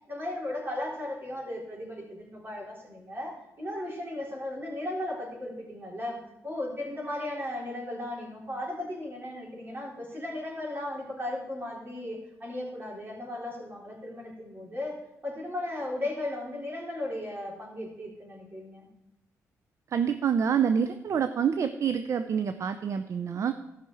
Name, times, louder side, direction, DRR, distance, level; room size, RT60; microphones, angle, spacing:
voice 1, 0.1-6.2 6.4-18.9, left 1 dB, 35° right, -3 dB, 4.1 m, -36 dB
voice 2, 19.9-23.5, right 7 dB, 55° right, 10 dB, 0.5 m, -27 dB
14.5 x 6.0 x 4.8 m, 0.91 s
cardioid pair, 85°, 6 cm